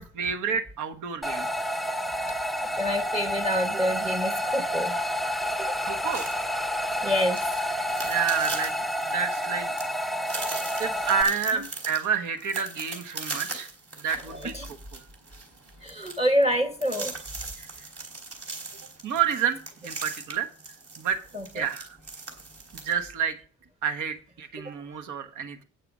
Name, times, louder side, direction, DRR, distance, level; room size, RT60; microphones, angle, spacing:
voice 1, 0.0-1.5 5.8-6.3 8.0-8.7 9.1-9.7 10.8-13.7 14.0-14.5 14.9-15.0 17.6-17.9 19.0-20.5 21.0-21.2 21.5-22.0 22.8-23.4 23.8-25.6, right 7 dB, 80° right, 9 dB, 1.2 m, -29 dB
sound 1, 1.2-11.2, equal, ahead, 0.5 m, -29 dB
voice 2, 2.8-5.0 5.6-5.8 7.0-7.4 10.4-10.8 14.5-14.7 15.8-17.4 21.3-21.7 24.6-24.8, equal, 20° right, 7 dB, 1.0 m, -27 dB
sound 2, 6.1-22.9, right 3 dB, 55° right, 3.7 m, -40 dB
9.1 x 6.7 x 6.1 m, 0.39 s
cardioid pair, 90°, 30 cm